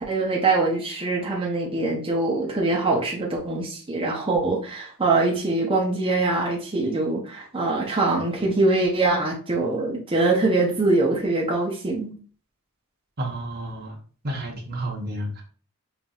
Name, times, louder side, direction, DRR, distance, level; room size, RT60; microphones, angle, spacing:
voice 1, 0.1-12.1, right 2 dB, 25° right, -2 dB, 0.6 m, -23 dB
voice 2, 13.2-14.0 14.2-15.4, right 1 dB, 45° right, 0 dB, 1.0 m, -31 dB
5.6 x 2.6 x 2.3 m, 0.40 s
head